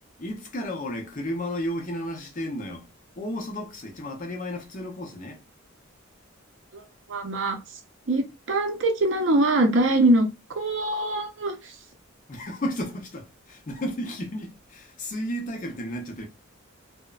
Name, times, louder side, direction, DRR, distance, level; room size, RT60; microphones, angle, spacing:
voice 1, 0.2-2.9 3.2-5.4 12.3-16.2, equal, 40° left, 0.6 m, -33 dB
voice 2, 7.1-7.6 8.1-10.3 10.6-11.7, right 1 dB, 60° right, 0.6 m, -23 dB
2.9 x 2.1 x 2.3 m
head